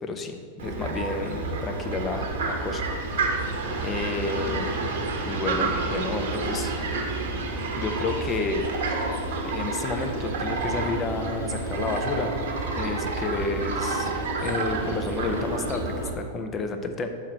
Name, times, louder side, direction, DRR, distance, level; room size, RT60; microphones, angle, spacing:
voice 1, 0.0-3.3 3.8-4.7 5.2-7.0 7.8-8.6 9.5-12.3 12.8-14.1 14.4-17.1, left 3 dB, 25° left, 6 dB, 0.6 m, -31 dB
Fowl, 0.6-16.1, right 3 dB, 55° right, 1.0 m, -29 dB
5.6 x 4.7 x 5.4 m, 2.1 s
figure-of-eight pair, 90°, 0 cm